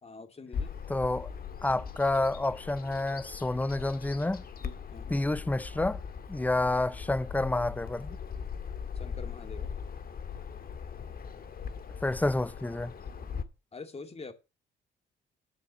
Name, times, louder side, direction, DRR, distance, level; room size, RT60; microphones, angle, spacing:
voice 1, 0.0-0.8 4.9-5.3 6.4-6.5 8.9-9.8 13.7-14.3, left 4 dB, 30° left, 2.4 m, -45 dB
Bird vocalization bird call bird song, 0.5-13.4, left 6 dB, 50° left, 1.7 m, -40 dB
voice 2, 0.9-1.3 1.6-4.4 5.1-6.0 6.3-8.2 12.0-12.9, left 2 dB, 10° left, 0.5 m, -29 dB
11.5 x 6.5 x 6.4 m
cardioid pair, 90°, 20 cm